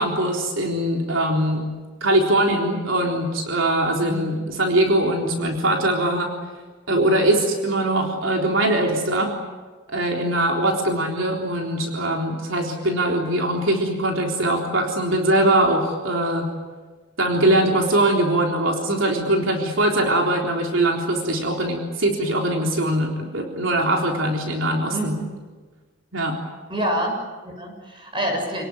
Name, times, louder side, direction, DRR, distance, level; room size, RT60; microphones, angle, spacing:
voice 1, 0.0-1.6 2.0-6.3 6.9-9.3 9.9-16.5 17.2-25.2 26.1-26.4, right 1 dB, 70° right, 1 dB, 3.8 m, -21 dB
voice 2, 4.0-4.4 24.9-25.3 26.7-28.7, right 1 dB, 25° right, 2 dB, 7.2 m, -27 dB
29.0 x 19.0 x 9.6 m, 1.4 s
head